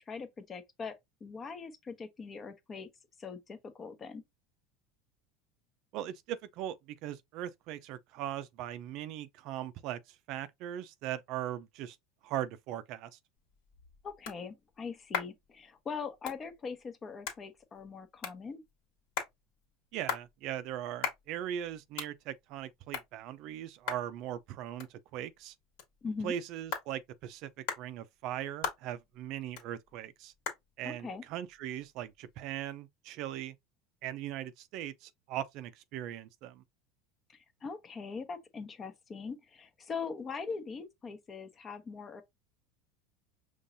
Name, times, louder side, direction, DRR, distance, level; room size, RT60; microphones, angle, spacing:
voice 1, 0.1-2.9 3.2-4.2 14.0-18.6 26.0-26.3 30.8-31.2 37.3-42.2, left 5 dB, 25° left, 0.9 m, -41 dB
voice 2, 5.9-12.0 12.2-13.2 19.9-25.5 26.2-30.3 30.8-33.5 34.0-36.6, right 11 dB, 55° right, 0.5 m, -39 dB
sound 1, 13.4-32.7, left 7 dB, 70° left, 1.8 m, -44 dB
5.4 x 3.1 x 2.6 m
supercardioid pair, 125°, 0 cm